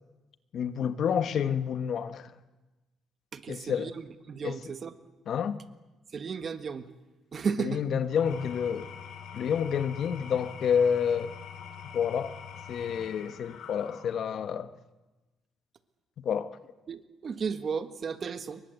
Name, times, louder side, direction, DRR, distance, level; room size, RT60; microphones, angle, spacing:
voice 1, 0.5-2.3 3.5-3.9 4.4-4.7 5.3-5.6 7.6-8.9 9.3-11.4 11.9-12.3 12.7-14.7 16.2-16.6, left 7 dB, 55° left, 1.2 m, -29 dB
voice 2, 3.3-3.9 4.3-4.9 6.1-6.9 7.3-7.8 16.9-18.6, right 6 dB, 35° right, 1.6 m, -34 dB
Engine / Tools, 8.0-14.5, left 7 dB, 80° left, 4.9 m, -45 dB
28.5 x 23.0 x 8.1 m
cardioid pair, 145°, 0 cm